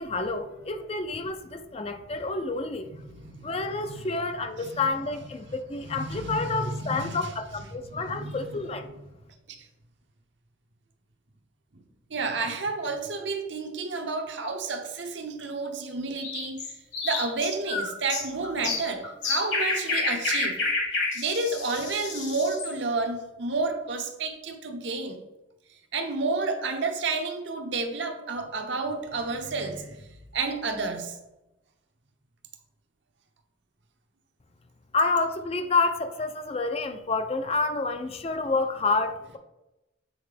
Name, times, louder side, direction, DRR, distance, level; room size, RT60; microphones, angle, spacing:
voice 1, 0.0-2.9 3.4-8.9 34.9-39.4, left 3 dB, 30° left, 8 dB, 0.5 m, -29 dB
voice 2, 3.1-3.5 3.8-3.9 4.6-4.9 5.8-7.4 7.9-9.0 12.1-16.8 17.0-20.6 21.1-25.2 25.9-30.0 30.3-31.2, right 3 dB, 65° right, 5 dB, 0.8 m, -31 dB
sound 1, 16.1-22.7, left 3 dB, 60° left, 1.7 m, -30 dB
7.8 x 4.2 x 3.4 m, 0.96 s
head